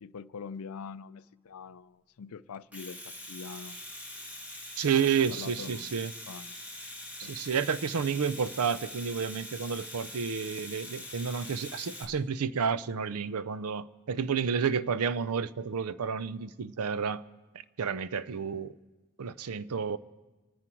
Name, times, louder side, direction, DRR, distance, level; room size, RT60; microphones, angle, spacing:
voice 1, 0.0-3.8 5.3-5.9 6.3-6.6 7.2-7.4, left 5 dB, 75° left, 0.5 m, -44 dB
Domestic sounds home sounds, 2.5-12.0, left 1 dB, 5° right, 1.3 m, -43 dB
voice 2, 4.8-6.1 7.2-17.2 17.8-18.7 19.2-20.0, right 6 dB, 80° right, 0.5 m, -30 dB
27.0 x 10.0 x 4.5 m
head